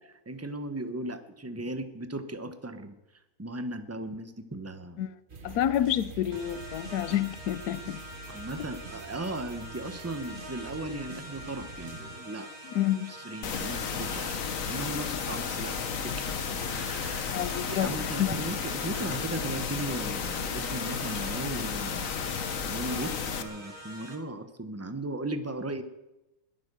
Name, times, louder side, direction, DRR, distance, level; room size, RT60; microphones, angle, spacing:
voice 1, 0.3-2.9 3.4-5.0 8.3-12.5 13.1-14.4 14.7-15.7 16.0-16.4 16.6-17.4 17.7-22.1 22.7-25.8, right 2 dB, 10° right, 0.9 m, -37 dB
sound 1, 5.3-12.2, right 3 dB, 35° right, 1.5 m, -46 dB
voice 2, 5.4-8.0 12.7-13.1 17.3-18.3, left 11 dB, 80° left, 1.3 m, -29 dB
sound 2, 6.3-24.2, equal, 70° right, 2.4 m, -45 dB
sound 3, 13.4-23.4, left 6 dB, 60° left, 1.4 m, -33 dB
21.0 x 9.6 x 6.8 m
omnidirectional pair, 1.6 m